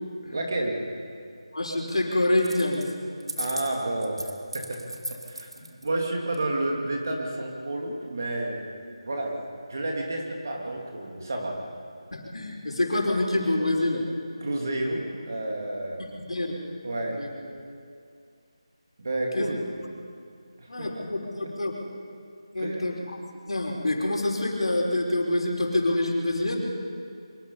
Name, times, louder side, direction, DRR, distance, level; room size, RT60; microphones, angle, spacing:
voice 1, 0.3-0.8 3.4-8.7 9.0-9.4 9.7-11.6 14.4-16.0 16.8-17.2 19.0-19.6 20.6-20.9 21.4-21.5 22.6-22.9, right 2 dB, 35° right, 0 dB, 2.6 m, -30 dB
voice 2, 1.5-2.9 12.1-14.0 16.0-16.5 17.0-17.3 19.3-19.4 20.7-21.7 22.5-23.2 23.5-26.6, left 1 dB, 80° left, 0 dB, 5.1 m, -26 dB
sound 1, 2.4-2.9 3.2-5.9, right 1 dB, 70° right, 2.5 m, -36 dB
24.5 x 23.0 x 5.7 m, 2.3 s
figure-of-eight pair, 180°, 3 cm